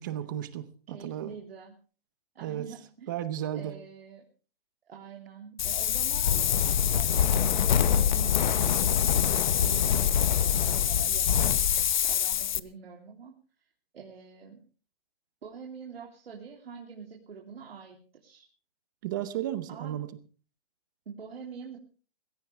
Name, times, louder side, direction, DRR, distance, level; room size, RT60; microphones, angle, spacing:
voice 1, 0.0-1.3 2.4-2.7 3.1-3.7 19.0-20.1, right 11 dB, 20° right, 13 dB, 0.8 m, -34 dB
voice 2, 0.9-1.7 2.3-3.1 3.5-4.2 4.9-6.5 6.8-9.1 9.6-13.3 13.9-14.6 15.4-18.5 19.7-20.0 21.0-21.8, right 6 dB, 85° right, 0 dB, 3.4 m, -45 dB
Wind, 5.6-12.6, left 9 dB, 50° left, 0.8 m, -24 dB
21.0 x 16.0 x 3.5 m, 0.38 s
hypercardioid pair, 170°, 30 cm